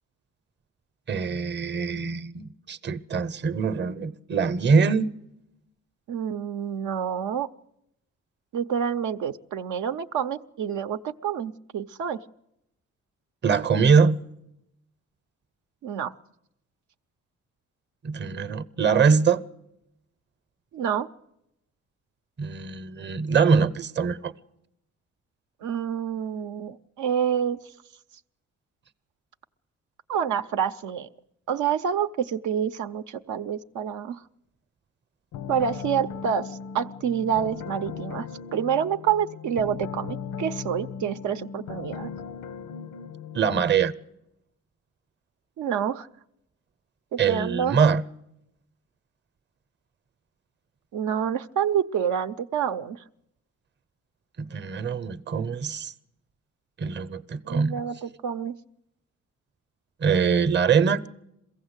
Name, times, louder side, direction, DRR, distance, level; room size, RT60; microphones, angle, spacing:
voice 1, 1.1-5.1 13.4-14.2 18.0-19.4 22.4-24.3 43.3-43.9 47.2-48.0 54.4-55.9 56.8-57.8 60.0-61.1, right 5 dB, 35° right, 0.8 m, -23 dB
voice 2, 6.1-7.5 8.5-12.2 15.8-16.1 20.7-21.1 25.6-27.6 30.1-31.1 31.5-34.2 35.5-38.3 38.5-42.1 45.6-46.1 47.1-47.8 50.9-53.0 57.5-58.6, right 8 dB, 75° right, 0.7 m, -28 dB
sound 1, 35.3-43.8, left 7 dB, 85° left, 0.8 m, -38 dB
22.0 x 16.0 x 8.1 m
cardioid pair, 90°, 30 cm